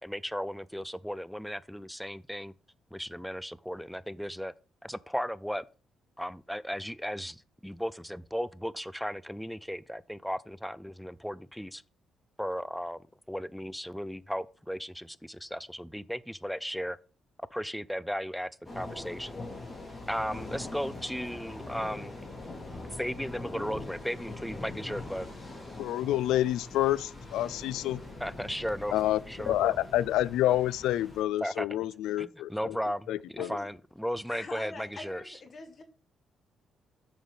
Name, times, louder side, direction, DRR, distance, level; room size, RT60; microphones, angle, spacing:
voice 1, 0.0-2.5 2.9-4.5 4.8-5.6 6.2-11.8 12.4-13.0 13.3-17.0 17.4-18.5 18.8-19.3 20.1-22.1 23.0-25.3 28.2-28.9 29.3-29.8 31.4-31.7 32.2-35.4, equal, ahead, 0.5 m, -35 dB
sound 1, 18.6-31.2, left 2 dB, 20° left, 3.2 m, -43 dB
voice 2, 25.8-28.0 28.9-29.2 29.5-32.7 33.1-33.5, left 13 dB, 90° left, 0.4 m, -28 dB
voice 3, 33.4-33.7 34.3-35.8, left 3 dB, 45° left, 1.6 m, -44 dB
7.3 x 5.2 x 5.5 m
cardioid pair, 90°, 0 cm